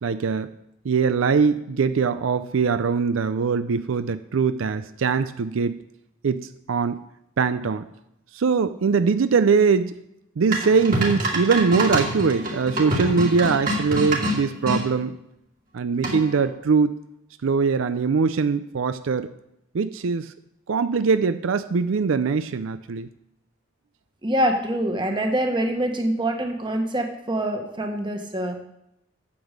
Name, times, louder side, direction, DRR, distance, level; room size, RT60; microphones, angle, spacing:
voice 1, 0.0-0.5 0.8-5.8 6.2-7.0 7.4-7.9 8.3-10.0 10.4-15.2 15.7-17.0 17.4-19.3 19.7-20.3 20.7-23.1, right 5 dB, 80° right, 12 dB, 0.5 m, -22 dB
sound 1, 10.5-14.8 16.0-16.4, right 1 dB, 45° right, 2.2 m, -26 dB
voice 2, 24.2-28.6, right 1 dB, 25° right, 3 dB, 1.4 m, -25 dB
8.6 x 8.0 x 6.6 m, 0.82 s
head